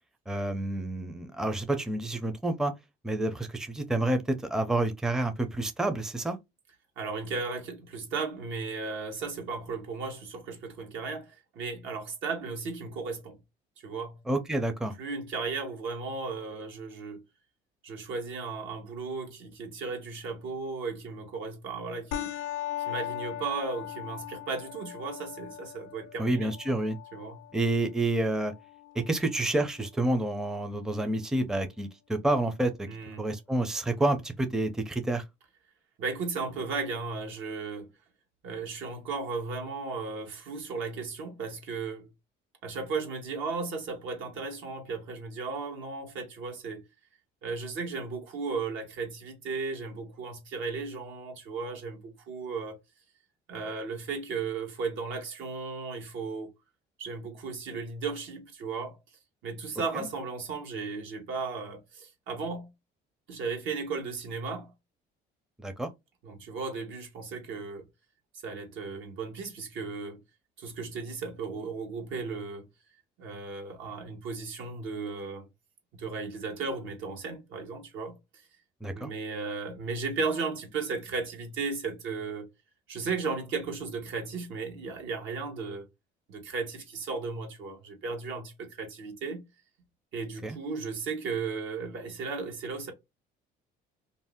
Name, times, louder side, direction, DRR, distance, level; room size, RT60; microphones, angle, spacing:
voice 1, 0.3-2.7 3.0-6.4 14.3-14.9 26.2-27.0 27.5-28.5 29.0-32.9 33.2-35.2 59.9-60.1 65.6-65.9 78.8-79.1 90.4-90.6, right 2 dB, 5° right, 0.5 m, -29 dB
voice 2, 7.0-13.4 13.8-14.2 15.0-17.2 17.8-22.3 22.8-26.5 27.1-27.4 32.9-33.3 36.0-37.9 38.4-42.1 42.6-46.8 47.4-52.8 53.5-56.5 57.0-59.0 59.4-62.7 63.3-64.7 66.2-67.8 68.4-70.2 70.6-72.7 73.2-75.4 75.9-78.2 78.9-82.5 82.9-85.9 86.3-89.5 90.1-92.9, right 4 dB, 75° right, 1.1 m, -35 dB
sound 1, 22.1-31.1, left 12 dB, 80° left, 0.5 m, -40 dB
2.6 x 2.0 x 3.4 m
cardioid pair, 90°, 20 cm